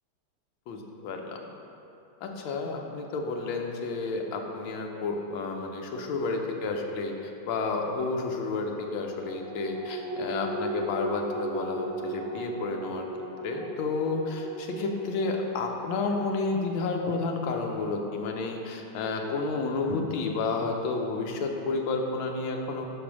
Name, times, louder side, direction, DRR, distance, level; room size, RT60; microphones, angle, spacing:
voice 1, 0.7-1.4 2.2-13.1 13.4-22.9, left 3 dB, 75° left, 2 dB, 1.5 m, -31 dB
sound 1, 8.7-19.5 19.9-20.0, right 2 dB, 40° right, 1.2 m, -38 dB
5.2 x 5.1 x 6.1 m, 2.9 s
omnidirectional pair, 2.3 m